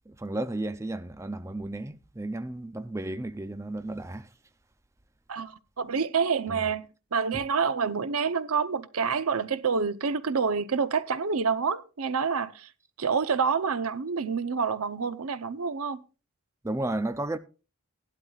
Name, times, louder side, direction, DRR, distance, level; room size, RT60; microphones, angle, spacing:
voice 1, 0.1-4.3 6.5-6.6 16.6-17.4, right 2 dB, 15° right, 0.5 m, -33 dB
voice 2, 5.3-12.7 13.0-16.0, right 5 dB, 85° right, 0.7 m, -28 dB
17.5 x 11.5 x 2.4 m
head